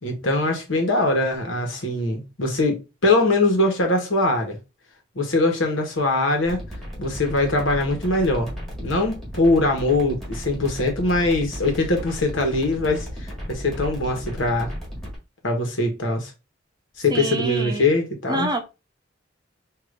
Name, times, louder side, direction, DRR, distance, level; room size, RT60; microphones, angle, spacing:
voice 1, 0.0-4.6 5.1-6.6 7.0-8.5 8.8-14.7 15.4-16.3 17.0-18.5, left 2 dB, 80° left, 1.2 m, -22 dB
sound 1, 6.4-15.2, equal, ahead, 1.8 m, -35 dB
voice 2, 17.1-17.8 18.3-18.6, right 2 dB, 20° right, 0.8 m, -26 dB
4.9 x 2.6 x 2.5 m
head